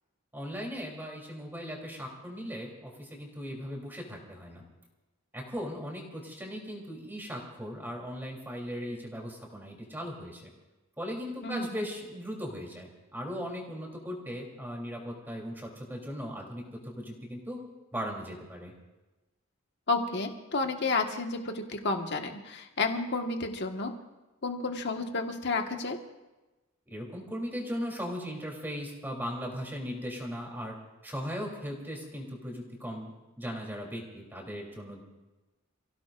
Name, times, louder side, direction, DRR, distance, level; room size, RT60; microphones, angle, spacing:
voice 1, 0.3-4.6 5.3-10.4 11.0-17.6 17.9-18.7 26.9-30.7 31.0-33.1 33.4-35.0, equal, 10° right, -1 dB, 3.4 m, -38 dB
voice 2, 11.4-11.8 19.9-23.9 24.4-26.0, left 3 dB, 55° left, 4 dB, 1.6 m, -31 dB
29.5 x 16.5 x 2.6 m, 1.1 s
head